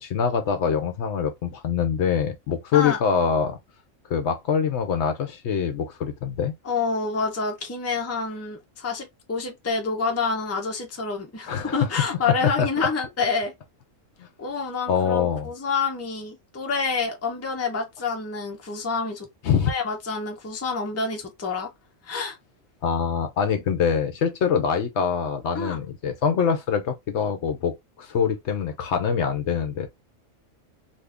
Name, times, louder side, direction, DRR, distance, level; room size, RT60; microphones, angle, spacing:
voice 1, 0.0-3.6 4.1-6.5 11.5-11.8 12.4-12.7 14.9-15.5 19.4-19.7 22.8-27.7 28.0-29.9, left 7 dB, 65° left, 0.8 m, -24 dB
voice 2, 6.6-13.5 14.4-19.3 19.7-21.7 22.0-22.4 25.5-25.8, left 4 dB, 15° left, 0.5 m, -28 dB
2.6 x 2.6 x 3.4 m
omnidirectional pair, 1.3 m